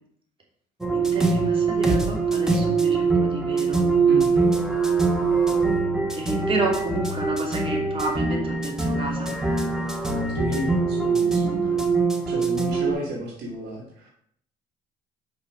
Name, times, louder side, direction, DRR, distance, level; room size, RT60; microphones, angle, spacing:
sound 1, 0.8-12.9, right 4 dB, 5° right, 1.1 m, -23 dB
voice 1, 0.9-3.9 6.1-9.3, right 2 dB, 30° right, -1 dB, 2.9 m, -30 dB
voice 2, 4.1-4.5 10.3-11.8 12.3-14.1, equal, 80° right, -1 dB, 2.4 m, -32 dB
6.4 x 5.8 x 6.4 m, 0.65 s
cardioid pair, 110°, 17 cm